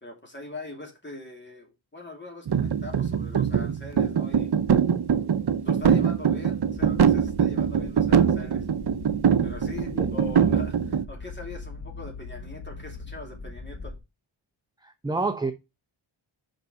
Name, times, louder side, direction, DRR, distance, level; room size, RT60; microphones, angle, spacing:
voice 1, 0.0-4.6 5.1-5.2 5.6-8.7 9.4-13.9, left 2 dB, 20° left, 2.5 m, -42 dB
sound 1, 2.5-11.0, right 7 dB, 55° right, 0.7 m, -23 dB
sound 2, 6.8-14.0, left 3 dB, 50° left, 1.8 m, -41 dB
voice 2, 14.8-15.5, right 3 dB, 10° right, 0.6 m, -29 dB
5.3 x 5.3 x 4.7 m
wide cardioid pair, 100°, 48 cm